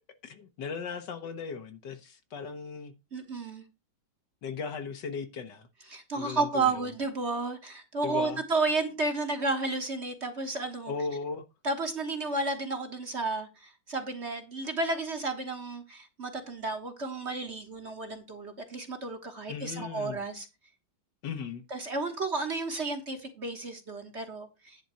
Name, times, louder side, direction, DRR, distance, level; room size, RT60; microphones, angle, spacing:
voice 1, 0.2-2.9 4.4-5.7 6.2-6.8 8.0-8.4 10.9-11.4 19.5-20.2 21.2-21.6, left 5 dB, 65° left, 1.6 m, -37 dB
voice 2, 3.1-3.6 5.9-10.9 11.6-20.5 21.7-24.8, right 3 dB, 40° right, 1.4 m, -32 dB
10.5 x 3.9 x 6.8 m
omnidirectional pair, 2.1 m